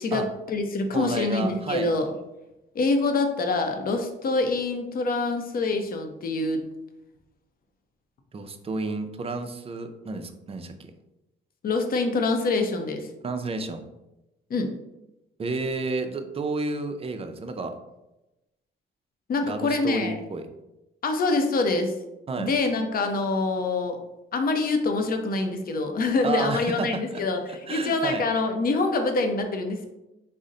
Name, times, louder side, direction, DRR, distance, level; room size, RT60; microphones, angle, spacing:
voice 1, 0.0-2.1 2.7-6.6 11.6-13.1 14.5-14.7 19.3-20.2 21.0-21.9 22.4-24.0 24.3-29.9, left 3 dB, 45° left, 5 dB, 0.6 m, -25 dB
voice 2, 0.9-1.9 8.3-10.7 13.2-13.8 15.4-17.8 19.4-20.5 22.3-22.5 26.2-27.2 27.5-28.3, right 3 dB, 30° right, 6 dB, 0.4 m, -31 dB
4.0 x 2.1 x 3.7 m, 0.95 s
cardioid pair, 90°, 20 cm